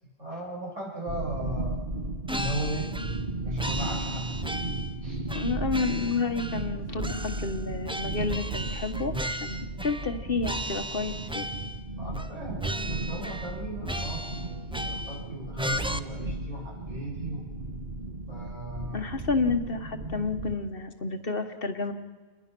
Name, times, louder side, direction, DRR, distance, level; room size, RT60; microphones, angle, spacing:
voice 1, 0.0-1.8 2.3-3.0 3.2-4.3 5.0-5.2 12.0-17.5 18.3-19.1, right 1 dB, 80° right, -3 dB, 7.2 m, -37 dB
sound 1, 1.1-20.6, right 2 dB, 40° right, 1.5 m, -35 dB
sound 2, 2.3-3.3 3.6-4.9 5.3-6.7 7.0-10.2 10.4-11.8 12.1-12.3 12.6-13.6 13.8-15.2 15.6-16.0, right 1 dB, 5° right, 0.4 m, -35 dB
voice 2, 5.3-11.5 18.9-21.9, left 4 dB, 50° left, 7 dB, 1.4 m, -30 dB
29.0 x 21.0 x 6.1 m, 1.4 s
omnidirectional pair, 1.3 m